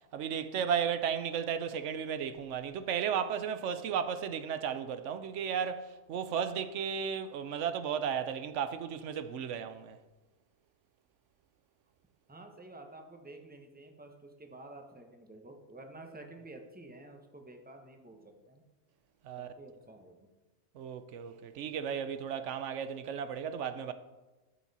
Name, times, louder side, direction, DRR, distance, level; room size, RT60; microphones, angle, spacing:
voice 1, 0.1-10.0 19.2-19.5 20.7-23.9, right 7 dB, 85° right, 1.0 m, -34 dB
voice 2, 12.3-18.6 19.4-20.3, right 2 dB, 10° right, 1.0 m, -50 dB
11.5 x 7.3 x 4.2 m
omnidirectional pair, 1.2 m